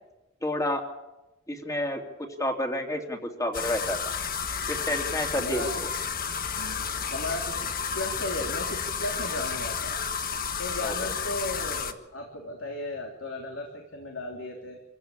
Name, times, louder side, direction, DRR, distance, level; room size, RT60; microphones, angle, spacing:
voice 1, 0.4-0.8 1.5-2.0 2.4-4.0 4.7-5.6 10.8-10.9, left 1 dB, 15° left, 3 dB, 3.0 m, -29 dB
sound 1, 3.5-11.9, left 6 dB, 45° left, 1.5 m, -31 dB
voice 2, 5.3-5.7 6.6-10.0 10.6-14.8, left 1 dB, 70° left, 1 dB, 3.5 m, -35 dB
26.5 x 16.0 x 8.7 m, 0.99 s
head